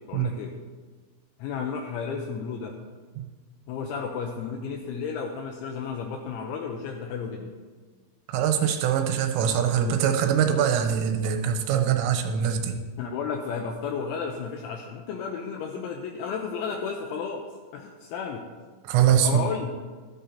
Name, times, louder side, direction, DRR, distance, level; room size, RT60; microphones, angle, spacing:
voice 1, 0.1-0.5 1.4-2.7 3.7-7.6 13.0-17.4 17.7-18.4 19.2-19.7, left 6 dB, 80° left, 2 dB, 2.9 m, -33 dB
voice 2, 8.3-12.8 18.9-19.4, right 8 dB, 85° right, 6 dB, 3.2 m, -23 dB
13.5 x 13.0 x 2.8 m, 1.4 s
omnidirectional pair, 6.0 m